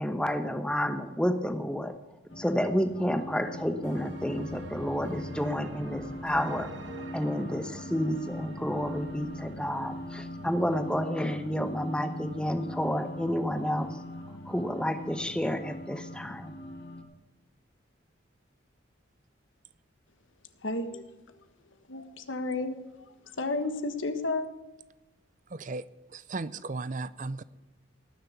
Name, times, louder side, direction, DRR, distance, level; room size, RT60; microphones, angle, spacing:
voice 1, 0.0-1.9 2.4-6.7 7.1-14.0 14.5-16.5, equal, 5° left, 7 dB, 1.0 m, -30 dB
sound 1, 2.3-17.0, left 1 dB, 65° left, 2.7 m, -42 dB
sound 2, 3.8-11.5, right 2 dB, 70° right, 1.4 m, -47 dB
voice 2, 20.6-21.0 21.9-22.8 23.4-24.4, left 2 dB, 80° left, 8 dB, 1.5 m, -31 dB
voice 3, 25.5-25.8 26.1-27.4, right 3 dB, 40° right, 16 dB, 0.5 m, -35 dB
18.0 x 6.7 x 8.1 m, 1.1 s
head